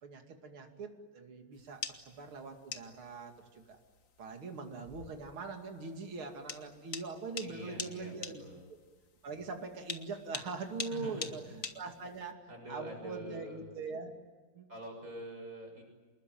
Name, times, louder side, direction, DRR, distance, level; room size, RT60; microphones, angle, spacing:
voice 1, 0.0-3.8 4.2-8.4 9.2-12.3 12.7-14.1 14.5-14.7, right 4 dB, 75° right, 3 dB, 3.4 m, -42 dB
sound 1, 1.6-12.3, left 5 dB, 40° left, 1.7 m, -45 dB
voice 2, 7.4-8.6 10.9-11.5 12.5-13.6 14.7-15.8, right 1 dB, 40° right, 2 dB, 6.8 m, -45 dB
27.5 x 20.5 x 9.3 m, 1.4 s
omnidirectional pair, 2.3 m